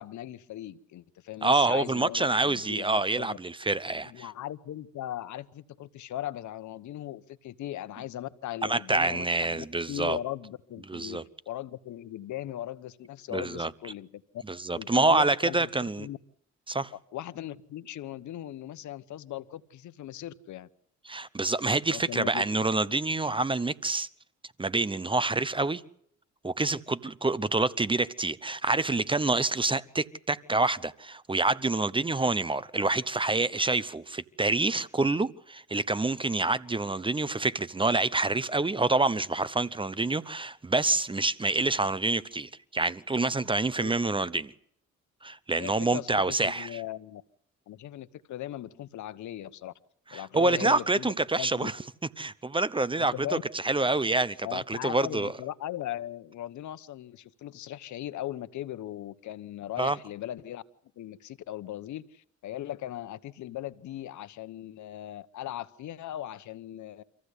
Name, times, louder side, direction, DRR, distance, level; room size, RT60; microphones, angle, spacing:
voice 1, 0.0-3.4 4.1-14.4 14.7-15.7 16.0-16.2 17.1-20.7 21.9-22.4 43.8-43.9 45.6-47.2 47.7-49.7 50.1-51.1 51.4-51.7 53.0-53.4 54.4-60.6 61.0-67.0, left 12 dB, 75° left, 1.0 m, -38 dB
voice 2, 1.4-4.3 8.6-10.2 10.9-11.2 13.3-13.7 14.5-16.1 16.7-16.9 21.1-24.1 24.6-25.8 26.4-44.5 45.2-46.8 50.1-51.7 52.2-53.1 53.6-55.3 59.8-60.0, right 2 dB, 15° right, 0.8 m, -27 dB
26.0 x 15.0 x 8.2 m
cardioid pair, 90°, 30 cm